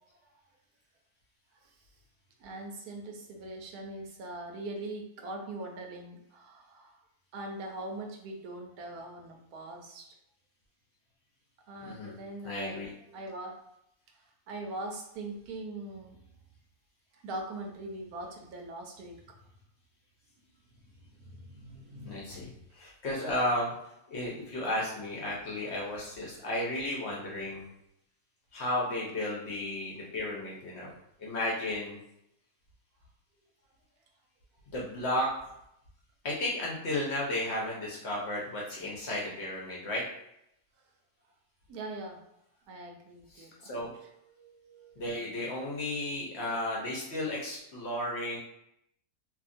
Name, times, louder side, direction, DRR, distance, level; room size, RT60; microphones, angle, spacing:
voice 1, 2.4-7.0 7.3-10.1 11.7-12.8 13.1-13.6 14.5-16.2 17.2-19.4 20.7-20.8 21.1-22.6 26.3-26.4 41.7-42.3 42.7-43.9 44.2-45.0, right 2 dB, 85° right, 2 dB, 1.1 m, -42 dB
voice 2, 11.8-12.2 12.4-12.9 22.1-23.7 24.1-27.7 28.5-30.9 31.2-32.0 34.7-35.3 36.2-40.0 43.3-43.9 45.0-48.4, left 1 dB, 60° left, -3 dB, 0.8 m, -33 dB
2.8 x 2.3 x 2.5 m, 0.79 s
omnidirectional pair, 1.6 m